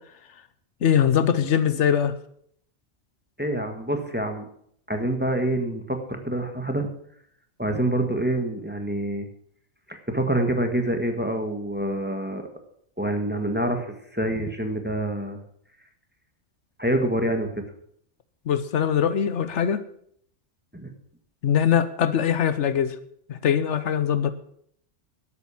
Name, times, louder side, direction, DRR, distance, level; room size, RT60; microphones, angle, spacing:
voice 1, 0.8-2.2 18.5-19.8 21.4-23.0 23.3-24.3, left 8 dB, 80° left, 12 dB, 1.1 m, -22 dB
voice 2, 3.4-4.5 4.9-6.9 7.6-9.3 9.9-12.5 13.0-15.4 16.8-17.5 20.7-20.9, right 1 dB, 10° right, 5 dB, 1.5 m, -26 dB
12.0 x 8.6 x 7.1 m, 0.68 s
omnidirectional pair, 1.2 m